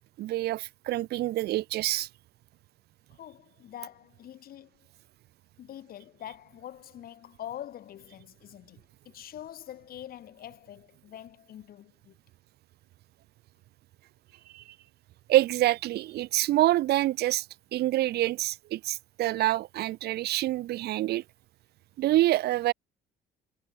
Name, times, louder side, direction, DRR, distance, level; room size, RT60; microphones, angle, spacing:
voice 1, 0.2-2.1 14.5-14.6 15.3-17.4 17.7-21.2 22.0-22.7, right 15 dB, 70° right, 1.4 m, -26 dB
voice 2, 3.1-4.9 5.6-12.2, left 11 dB, 60° left, 7.4 m, -45 dB
cardioid pair, 110°, 17 cm